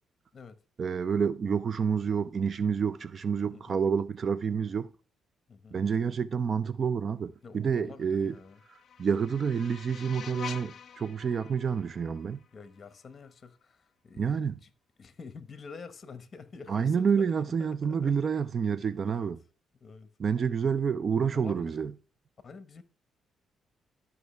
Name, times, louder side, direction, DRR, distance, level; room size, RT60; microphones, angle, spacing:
voice 1, 0.8-4.9 5.7-8.4 9.0-12.4 14.2-14.6 16.7-19.4 20.2-21.9, right 6 dB, 45° right, 0.5 m, -28 dB
voice 2, 3.5-3.8 5.5-5.8 7.4-8.6 12.5-14.7 15.0-17.3 17.6-18.1 18.9-19.3 19.8-20.1 20.7-20.9 21.3-21.7 22.4-22.8, left 4 dB, 40° left, 1.2 m, -48 dB
sound 1, 8.2-13.2, left 8 dB, 60° left, 0.6 m, -46 dB
12.5 x 5.7 x 3.3 m
cardioid pair, 90°, 0 cm